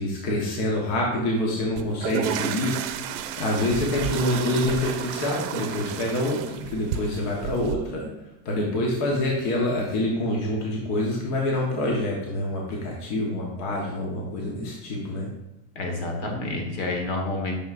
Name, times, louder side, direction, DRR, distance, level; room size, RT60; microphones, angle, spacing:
voice 1, 0.0-3.1 3.4-8.1 8.4-15.3, left 1 dB, 45° left, -1 dB, 1.3 m, -26 dB
sound 1, 1.8-7.8, right 9 dB, 65° right, 0.6 m, -32 dB
voice 2, 15.8-17.6, left 2 dB, 65° left, 2 dB, 1.7 m, -29 dB
6.3 x 6.1 x 2.6 m, 0.91 s
supercardioid pair, 140°, 38 cm